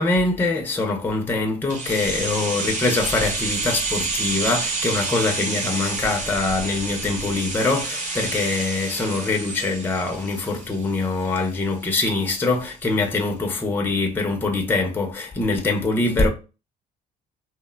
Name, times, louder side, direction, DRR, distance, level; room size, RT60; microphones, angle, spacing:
voice 1, 0.0-16.3, left 3 dB, 10° left, 0.5 m, -23 dB
sound 1, 1.7-11.5 11.8-11.9, right 3 dB, 45° right, 0.9 m, -29 dB
2.9 x 2.0 x 2.2 m
cardioid pair, 110°, 17 cm